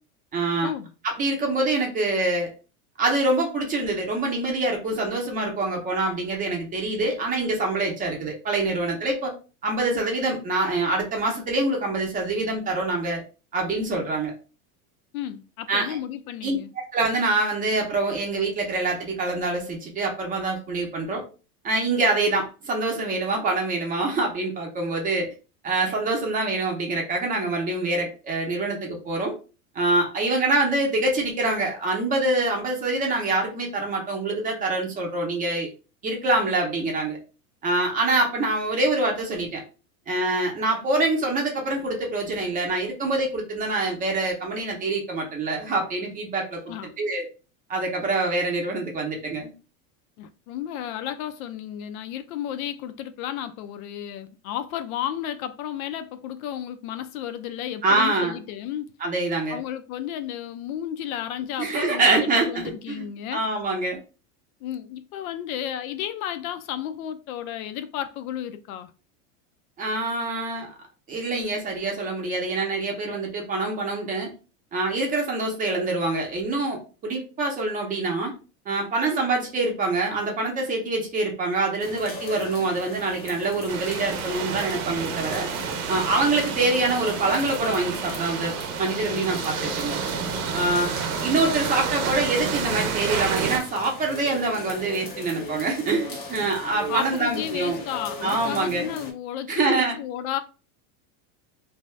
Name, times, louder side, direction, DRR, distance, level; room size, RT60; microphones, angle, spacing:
voice 1, 0.3-0.7 1.0-2.5 3.0-9.3 9.6-13.2 13.5-14.3 15.7-16.0 16.4-16.6 16.9-21.2 21.6-25.3 25.6-29.3 29.7-35.7 36.0-37.2 37.6-39.6 40.1-47.3 47.7-49.5 57.8-58.3 59.0-59.6 61.6-63.1 63.3-64.0 69.8-70.7 71.1-74.3 74.7-78.3 78.7-85.5 85.9-90.0 90.5-90.9 91.2-97.8 98.2-98.9 99.5-99.9, right 2 dB, 20° right, 0.6 m, -25 dB
voice 2, 15.1-16.7 46.7-46.9 50.2-58.9 59.5-63.4 64.6-68.9 96.9-100.4, left 10 dB, 75° left, 0.6 m, -33 dB
sound 1, 81.8-99.1, left 2 dB, 25° left, 0.5 m, -39 dB
sound 2, 83.7-93.6, right 6 dB, 90° right, 0.7 m, -30 dB
2.7 x 2.3 x 3.1 m
supercardioid pair, 155°, 43 cm